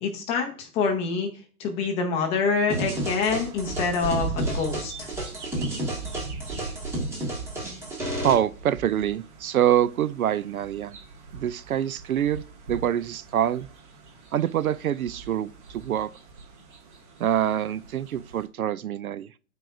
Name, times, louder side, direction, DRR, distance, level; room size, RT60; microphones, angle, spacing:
voice 1, 0.0-1.3 1.6-4.9, left 5 dB, 15° left, 0.9 m, -26 dB
sound 1, 2.7-8.3, right 1 dB, 5° right, 1.7 m, -31 dB
sound 2, 2.7-18.5, right 4 dB, 50° right, 2.7 m, -40 dB
voice 2, 8.2-11.0 11.3-12.4 12.7-13.7 14.3-16.1 17.2-19.3, right 10 dB, 65° right, 0.6 m, -25 dB
12.5 x 4.7 x 2.6 m
hypercardioid pair, 145°, 46 cm